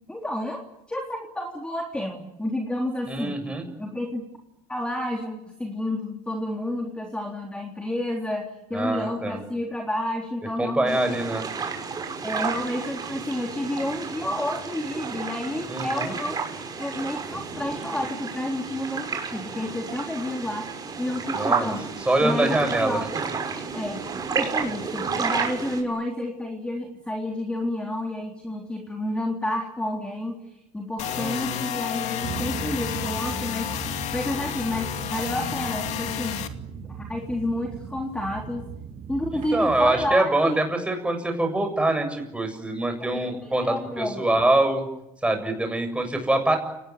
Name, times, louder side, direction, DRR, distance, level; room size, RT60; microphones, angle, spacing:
voice 1, 0.1-0.6 0.9-3.4 3.8-4.2 4.7-11.2 12.2-16.5 16.8-23.1 23.7-24.1 24.3-30.4 30.7-36.5 37.0-38.6 39.1-40.6 43.4-44.2, left 1 dB, 5° left, 2 dB, 3.7 m, -30 dB
voice 2, 3.1-3.6 8.7-9.4 10.6-11.5 15.7-16.1 21.3-21.7 22.1-23.1 31.0-31.7 39.5-44.8 45.2-46.6, right 2 dB, 10° right, 5 dB, 7.5 m, -24 dB
sound 1, 10.9-25.8, right 5 dB, 30° right, 6.0 m, -31 dB
sound 2, 31.0-36.5, left 11 dB, 55° left, 2.5 m, -31 dB
sound 3, 32.2-40.1, right 6 dB, 50° right, 3.6 m, -37 dB
29.5 x 19.5 x 9.5 m, 0.89 s
cardioid pair, 120°, 14 cm